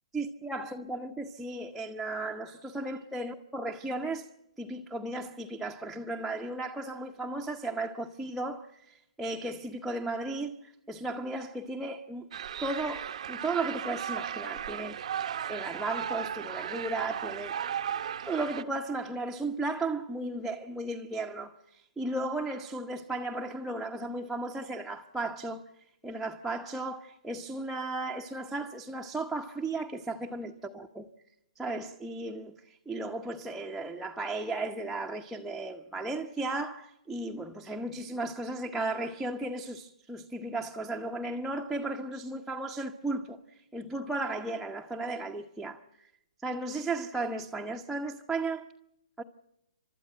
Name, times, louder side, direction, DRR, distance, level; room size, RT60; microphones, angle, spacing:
voice 1, 0.1-4.3 4.6-12.3 12.6-15.0 15.5-17.5 18.2-25.6 26.0-31.1 31.6-43.4 43.7-46.1 46.4-48.6 49.2-49.3, right 2 dB, ahead, 0.9 m, -35 dB
sound 1, 12.3-18.6, right 9 dB, 60° right, 0.7 m, -36 dB
29.5 x 13.0 x 9.1 m
hypercardioid pair, 145°, 4 cm